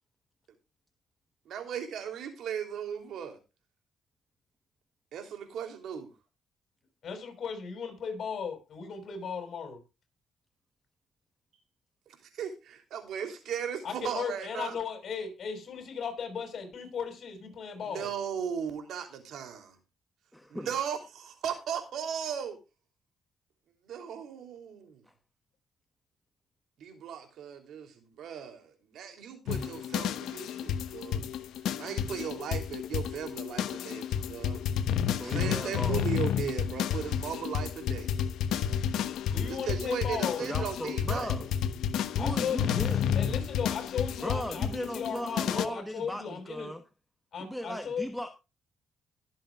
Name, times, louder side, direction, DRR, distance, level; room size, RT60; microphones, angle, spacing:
voice 1, 1.4-3.4 5.1-6.1 12.1-14.8 17.9-19.8 20.5-22.6 23.8-25.0 26.8-31.3 31.8-34.6 35.2-38.3 39.5-41.3, right 8 dB, 75° right, 6 dB, 3.1 m, -37 dB
voice 2, 7.0-9.8 13.8-18.1 39.3-40.4 42.2-42.8 43.1-46.7 47.3-48.1, left 6 dB, 55° left, 5 dB, 5.9 m, -36 dB
voice 3, 20.3-20.7 35.2-36.0 40.4-41.5 42.2-43.0 44.2-46.8 47.4-48.3, equal, ahead, 6 dB, 1.2 m, -37 dB
sound 1, 29.5-45.7, left 8 dB, 80° left, 1.0 m, -31 dB
22.0 x 7.7 x 2.4 m, 0.27 s
cardioid pair, 90°, 0 cm